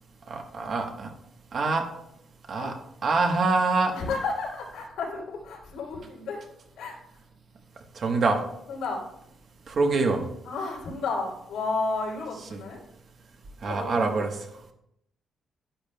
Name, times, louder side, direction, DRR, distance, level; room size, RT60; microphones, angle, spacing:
voice 1, 0.3-1.1 1.5-1.9 2.5-2.7 3.0-3.9 7.9-8.4 9.7-10.2 13.6-14.3, right 3 dB, 45° right, 4 dB, 1.1 m, -25 dB
voice 2, 3.9-6.4 6.7-7.2 8.7-9.0 10.4-12.8 13.6-14.3, left 3 dB, 90° left, -1 dB, 2.9 m, -32 dB
10.5 x 10.0 x 2.2 m, 0.81 s
cardioid pair, 160°, 0 cm